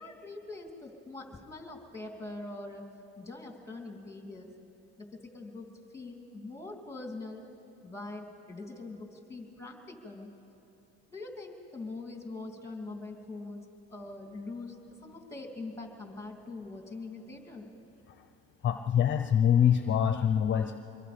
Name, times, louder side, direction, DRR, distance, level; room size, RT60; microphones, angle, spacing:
voice 1, 0.0-2.8 3.2-4.5 5.0-7.4 7.8-10.3 11.1-14.8 15.0-17.7, left 2 dB, 10° left, 3 dB, 2.8 m, -43 dB
voice 2, 18.6-20.8, left 9 dB, 40° left, 8 dB, 0.8 m, -25 dB
24.5 x 22.0 x 5.2 m, 2.8 s
cardioid pair, 105°, 31 cm